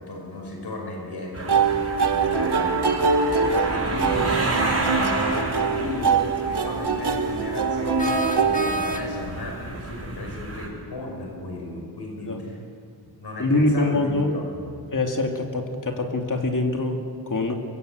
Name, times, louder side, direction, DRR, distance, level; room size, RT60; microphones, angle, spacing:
voice 1, 0.0-6.1 6.5-12.6 13.2-14.8, left 2 dB, 85° left, 0 dB, 5.8 m, -35 dB
sound 1, 1.3-10.7, right 2 dB, 40° right, 5.7 m, -31 dB
sound 2, 1.5-9.4, right 5 dB, 85° right, 1.7 m, -24 dB
sound 3, 8.0-9.4, right 1 dB, 20° left, 2.0 m, -30 dB
voice 2, 13.4-14.4 14.9-17.6, left 2 dB, 50° left, 2 dB, 2.8 m, -24 dB
24.0 x 23.5 x 8.2 m, 2.3 s
wide cardioid pair, 90°, 39 cm